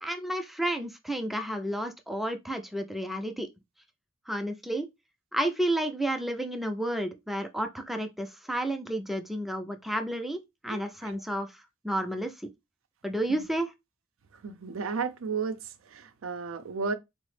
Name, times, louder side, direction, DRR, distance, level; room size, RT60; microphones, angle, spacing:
voice 1, 0.0-3.5 4.3-4.9 5.3-12.5 13.0-13.7, right 1 dB, ahead, 0.4 m, -31 dB
voice 2, 10.7-11.2 14.3-16.9, right 5 dB, 75° right, 0.5 m, -34 dB
3.8 x 2.0 x 3.2 m
head